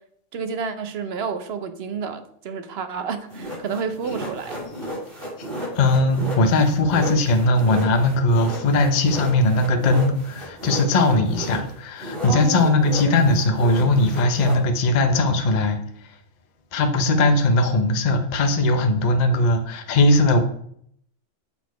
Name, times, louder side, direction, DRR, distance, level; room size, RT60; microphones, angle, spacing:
voice 1, 0.3-4.6 12.3-12.9, right 5 dB, 60° right, 9 dB, 0.9 m, -30 dB
sound 1, 3.3-11.7 12.0-14.6, equal, 45° right, 3.1 m, -34 dB
voice 2, 5.7-16.2 16.7-20.4, left 2 dB, 40° left, 6 dB, 0.7 m, -19 dB
6.5 x 4.2 x 4.6 m, 0.67 s
omnidirectional pair, 1.3 m